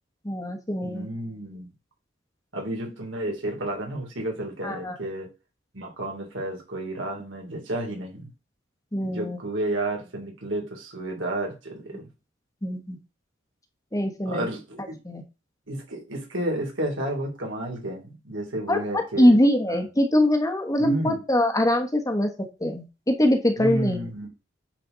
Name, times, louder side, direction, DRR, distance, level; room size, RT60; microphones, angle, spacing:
voice 1, 0.2-1.1 4.6-5.0 8.9-9.4 12.6-13.0 13.9-14.5 15.0-15.2 18.7-22.3 22.6-24.1, left 1 dB, 15° left, 4 dB, 1.3 m, -23 dB
voice 2, 0.8-1.7 2.5-5.3 5.7-8.3 9.0-12.1 14.2-15.0 15.7-19.4 19.7-19.9 20.8-21.2 23.6-24.3, right 1 dB, 70° right, 1 dB, 3.4 m, -31 dB
9.8 x 4.5 x 4.0 m, 0.29 s
head